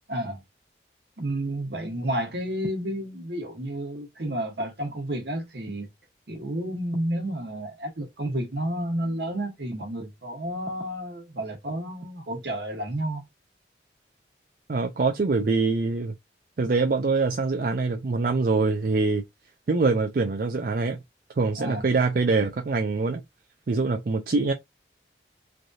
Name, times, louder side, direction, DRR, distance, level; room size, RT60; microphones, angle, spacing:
voice 1, 0.1-0.4 1.2-5.9 6.3-13.2 21.5-21.9, right 1 dB, 70° right, 1.2 m, -31 dB
voice 2, 14.7-16.1 16.6-19.2 19.7-21.0 21.4-23.2 23.7-24.5, right 3 dB, 50° right, 0.4 m, -24 dB
3.3 x 2.7 x 2.4 m
head